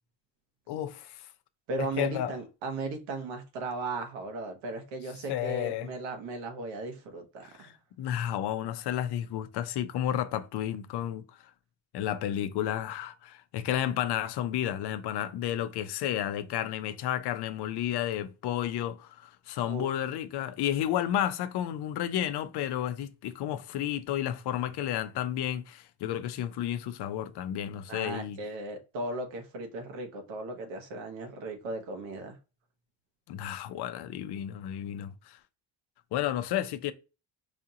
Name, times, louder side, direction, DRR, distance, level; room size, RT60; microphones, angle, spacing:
voice 1, 0.7-1.2 1.8-2.3 5.3-5.9 7.4-7.7 8.0-11.2 11.9-28.4 33.3-35.4 36.1-36.9, left 11 dB, 65° left, 0.6 m, -32 dB
voice 2, 1.7-7.7 19.7-19.9 27.9-32.4, right 2 dB, 90° right, 1.3 m, -36 dB
5.0 x 2.5 x 2.8 m
cardioid pair, 145°, 44 cm